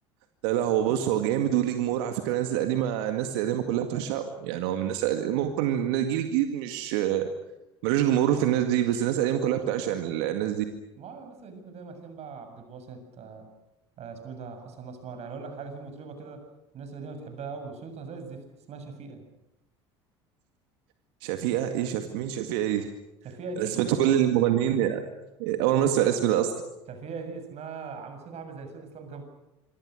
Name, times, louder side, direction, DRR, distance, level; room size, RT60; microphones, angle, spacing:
voice 1, 0.4-7.3 7.8-10.6 21.2-22.9 23.6-25.0 25.4-26.5, right 11 dB, 70° right, 7 dB, 2.0 m, -25 dB
voice 2, 11.0-13.5 14.0-16.5 16.7-19.2 23.2-24.2 26.9-29.2, right 4 dB, 50° right, 7 dB, 7.2 m, -40 dB
26.5 x 24.5 x 6.5 m, 0.95 s
hypercardioid pair, 70°, 14 cm